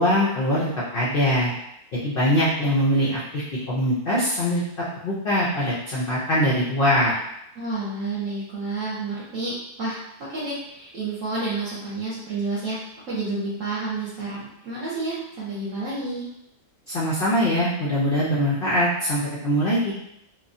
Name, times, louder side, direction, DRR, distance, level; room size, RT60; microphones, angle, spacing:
voice 1, 0.0-1.5 2.0-4.6 5.0-7.1 16.9-19.9, equal, 75° left, -7 dB, 0.5 m, -22 dB
voice 2, 7.6-12.8 13.1-16.2, right 3 dB, 65° right, -7 dB, 1.0 m, -30 dB
2.9 x 2.2 x 2.6 m, 0.80 s
omnidirectional pair, 1.7 m